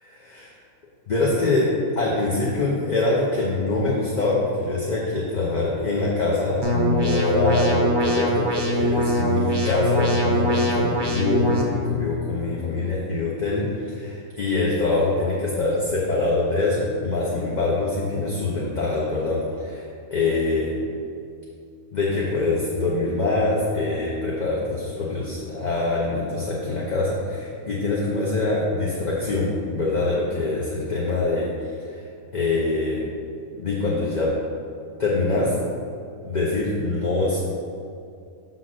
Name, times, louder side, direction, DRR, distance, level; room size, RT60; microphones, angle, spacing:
voice 1, 0.0-0.5 1.1-1.7 2.0-19.8 20.1-20.7 21.9-31.5 31.9-32.0 32.3-33.0 33.5-34.3 35.0-35.5 36.2-37.4, left 2 dB, 35° left, -5 dB, 0.8 m, -24 dB
sound 1, 6.6-11.6, equal, 25° right, 0.6 m, -23 dB
6.0 x 4.0 x 6.2 m, 2.4 s
omnidirectional pair, 1.5 m